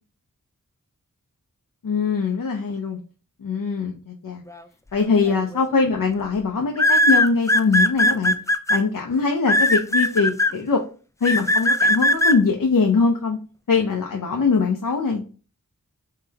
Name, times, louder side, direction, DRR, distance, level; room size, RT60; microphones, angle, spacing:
voice 1, 1.8-3.0 3.4-4.4 4.9-8.4 8.7-10.8 11.2-13.4 13.7-15.2, left 4 dB, 70° left, 2 dB, 0.6 m, -22 dB
sound 1, 5.3-5.6 6.8-8.8 9.5-10.5 11.2-12.3, left 1 dB, 10° left, 0.3 m, -18 dB
3.7 x 3.3 x 2.7 m, 0.36 s
wide cardioid pair, 40°, 34 cm